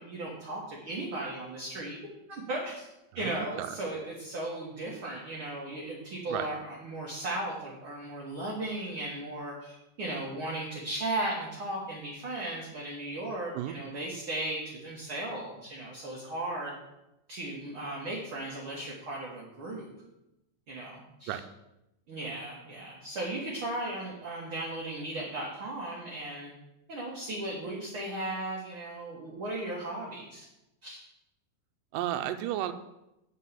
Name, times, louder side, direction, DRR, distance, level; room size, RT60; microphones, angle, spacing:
voice 1, 0.0-2.0 2.3-2.9 3.1-16.7 17.3-19.9 20.7-21.4 22.1-26.5 26.9-30.5 30.8-31.0, right 1 dB, 50° right, -4 dB, 1.8 m, -36 dB
voice 2, 3.2-3.7 6.3-6.5 13.5-13.7 21.3-21.4 31.9-32.7, right 12 dB, 85° right, 9 dB, 2.2 m, -33 dB
8.3 x 4.6 x 7.3 m, 0.91 s
omnidirectional pair, 3.8 m